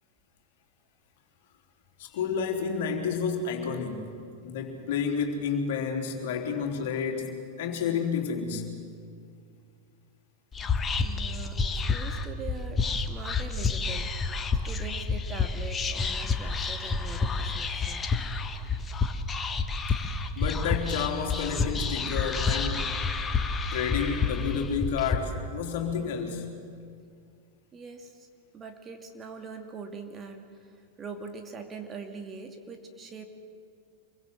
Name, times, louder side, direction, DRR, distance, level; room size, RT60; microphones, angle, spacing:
voice 1, 2.0-4.2 4.4-8.7 20.4-22.9 23.7-26.5, left 6 dB, 55° left, 3 dB, 3.7 m, -30 dB
Whispering, 10.5-25.2, left 4 dB, 20° left, 1.5 m, -29 dB
voice 2, 11.0-14.1 14.6-18.1 27.7-28.3 28.5-33.2, right 4 dB, 20° right, 5 dB, 2.4 m, -42 dB
27.0 x 23.0 x 7.9 m, 2.2 s
figure-of-eight pair, 90°, 0 cm